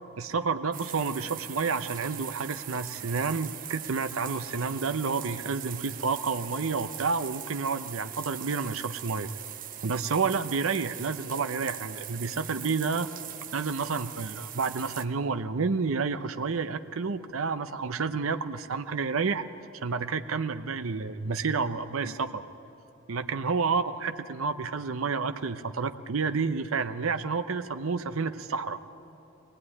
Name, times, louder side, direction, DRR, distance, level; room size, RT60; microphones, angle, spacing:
voice 1, 0.2-9.3 9.8-13.1 13.5-19.4 19.8-22.4 23.1-28.8, right 4 dB, 80° right, 9 dB, 0.7 m, -30 dB
sound 1, 0.7-15.1, right 11 dB, 40° right, 1.0 m, -41 dB
23.0 x 19.0 x 9.8 m, 2.9 s
head